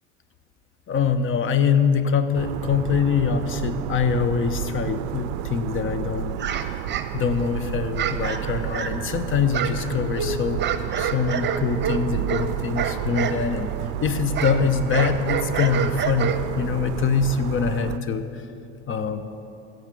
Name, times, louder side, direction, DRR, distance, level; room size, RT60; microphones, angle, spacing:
voice 1, 0.9-6.4 7.1-10.6 11.0-13.7 14.0-18.4 18.9-19.3, left 6 dB, 35° left, 11 dB, 0.9 m, -24 dB
sound 1, 2.3-18.0, right 14 dB, 65° right, 0.5 m, -31 dB
sound 2, 6.4-7.5 8.0-9.1 9.5-13.4 13.7-16.7, right 7 dB, 30° right, 1.0 m, -28 dB
14.5 x 6.6 x 8.5 m, 3.0 s
hypercardioid pair, 75°, 37 cm